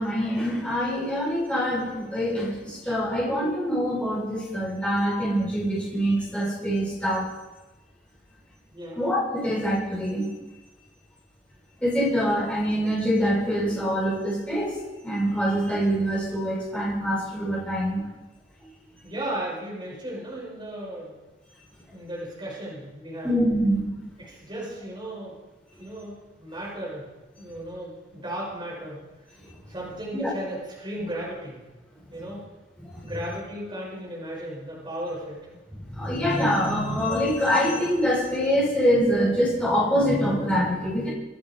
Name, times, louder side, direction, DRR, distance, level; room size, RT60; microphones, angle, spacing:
voice 1, 0.0-7.3 9.0-10.3 11.8-14.8 15.0-18.0 23.2-23.9 30.1-30.3 32.8-33.1 35.9-41.1, equal, 5° left, -6 dB, 5.6 m, -25 dB
voice 2, 8.7-9.0 19.0-21.2 21.9-23.3 24.2-25.3 25.8-29.0 29.7-31.6 32.1-32.4 33.0-35.5, right 1 dB, 25° right, -6 dB, 6.3 m, -35 dB
25.0 x 11.5 x 4.7 m, 1.1 s
head